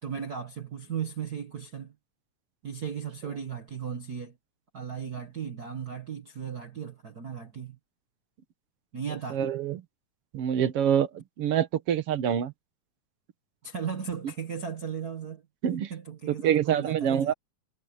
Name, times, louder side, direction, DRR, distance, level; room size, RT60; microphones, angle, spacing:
voice 1, 0.0-1.9 2.6-4.4 4.7-7.8 8.9-9.4 13.6-15.4 15.9-17.3, right 7 dB, 40° right, 1.6 m, -36 dB
voice 2, 9.3-9.8 10.3-12.5 15.6-15.9 16.3-17.3, right 9 dB, 55° right, 2.0 m, -26 dB
omnidirectional pair, 3.5 m